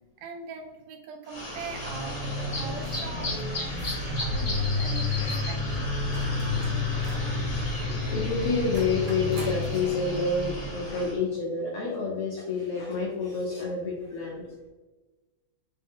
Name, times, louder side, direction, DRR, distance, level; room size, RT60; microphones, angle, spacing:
voice 1, 0.2-5.8 6.5-7.5, right 5 dB, 75° right, 3 dB, 1.7 m, -43 dB
sound 1, 1.3-11.2, left 2 dB, 30° left, 0.6 m, -30 dB
sound 2, 6.1-7.4 8.3-9.7 11.3-11.4, right 1 dB, 55° right, 1.1 m, -43 dB
voice 2, 7.9-14.4, left 4 dB, 70° left, -4 dB, 1.4 m, -28 dB
5.5 x 2.1 x 3.5 m, 1.2 s
omnidirectional pair, 3.4 m